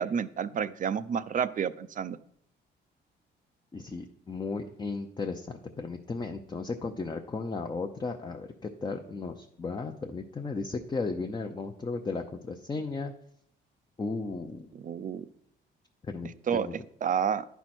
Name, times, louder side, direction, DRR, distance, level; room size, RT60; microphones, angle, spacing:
voice 1, 0.0-2.2 14.7-15.3 16.5-17.4, right 7 dB, 40° right, 15 dB, 0.4 m, -30 dB
voice 2, 3.7-13.1 14.0-14.7 16.1-16.7, left 3 dB, 20° left, 4 dB, 0.6 m, -35 dB
10.5 x 4.6 x 4.3 m, 0.68 s
cardioid pair, 90°, 20 cm